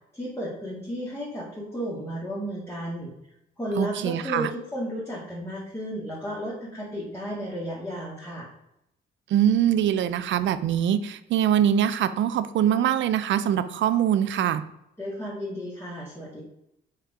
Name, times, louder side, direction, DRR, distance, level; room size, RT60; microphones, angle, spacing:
voice 1, 0.1-3.1 3.6-8.5 15.0-16.4, equal, 10° left, -6 dB, 2.0 m, -33 dB
voice 2, 3.8-4.5 9.3-14.6, right 10 dB, 70° right, 13 dB, 0.6 m, -23 dB
5.7 x 4.5 x 4.9 m, 0.81 s
cardioid pair, 90°, 20 cm